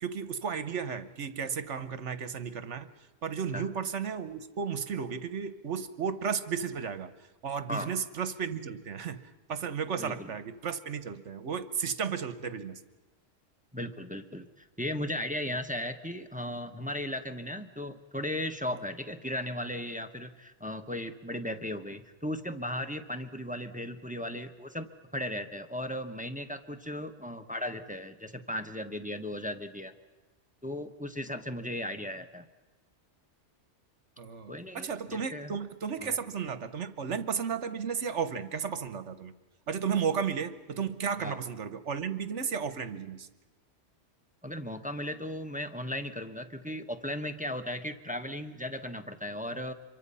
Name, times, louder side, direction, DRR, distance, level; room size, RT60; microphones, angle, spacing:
voice 1, 0.0-2.9 3.2-7.1 7.4-9.2 9.5-12.8 34.2-39.3 39.7-43.3, right 6 dB, 70° right, 12 dB, 1.4 m, -34 dB
voice 2, 10.0-10.3 13.7-24.9 25.1-29.9 30.6-32.5 34.5-35.6 36.0-36.1 41.2-41.4 44.4-49.7, left 1 dB, 5° right, 7 dB, 1.0 m, -36 dB
26.0 x 23.5 x 5.6 m, 1.1 s
omnidirectional pair, 1.3 m